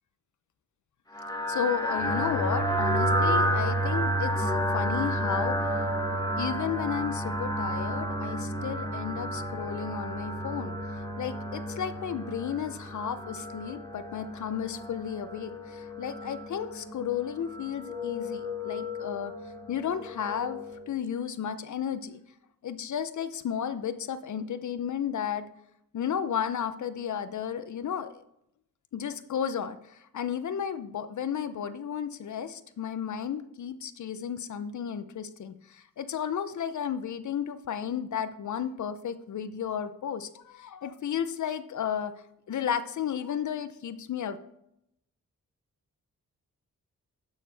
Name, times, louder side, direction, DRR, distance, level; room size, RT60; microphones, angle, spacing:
sound 1, 1.1-20.8, equal, 10° left, 1.2 m, -31 dB
voice 1, 1.5-5.9 6.1-10.8 11.2-19.3 19.7-20.6 20.9-22.2 22.6-25.5 25.9-28.2 28.9-42.1 42.5-44.4, left 8 dB, 65° left, 12 dB, 0.6 m, -33 dB
11.0 x 6.5 x 3.3 m, 0.79 s
cardioid pair, 70°, 32 cm